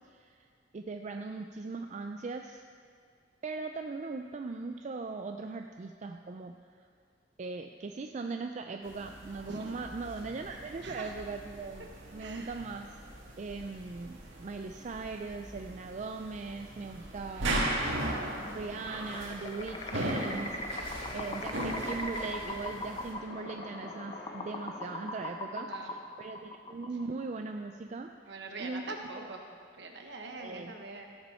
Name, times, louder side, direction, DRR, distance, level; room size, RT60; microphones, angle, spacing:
voice 1, 0.7-2.6 3.4-6.6 7.4-11.9 12.1-12.9 13.4-17.7 18.5-28.1 28.6-28.8 30.4-30.7, right 3 dB, 40° right, 5 dB, 0.4 m, -39 dB
sound 1, 8.8-23.1, right 1 dB, 90° right, 1.7 m, -38 dB
voice 2, 10.8-11.1 12.2-12.6 25.5-25.9 28.3-29.4 29.7-31.1, right 3 dB, 65° right, 2 dB, 1.2 m, -43 dB
sound 2, 18.8-27.3, left 1 dB, 30° left, 0.7 m, -40 dB
sound 3, 19.8-25.5, left 3 dB, 70° left, 1.0 m, -49 dB
16.5 x 7.0 x 4.4 m, 2.1 s
head